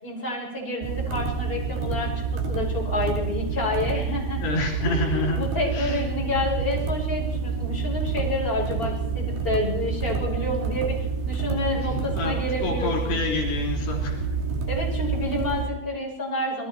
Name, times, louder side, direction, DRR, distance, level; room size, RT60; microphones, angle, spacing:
voice 1, 0.0-4.4 4.8-11.0 11.3-13.2 14.7-16.7, left 1 dB, 10° left, -2 dB, 6.3 m, -29 dB
sound 1, 0.8-15.7, right 5 dB, 60° right, 4.3 m, -28 dB
voice 2, 4.4-5.4 5.7-6.0 11.7-14.2, left 2 dB, 70° left, 0 dB, 5.6 m, -28 dB
28.5 x 20.5 x 4.5 m, 0.82 s
omnidirectional pair, 5.1 m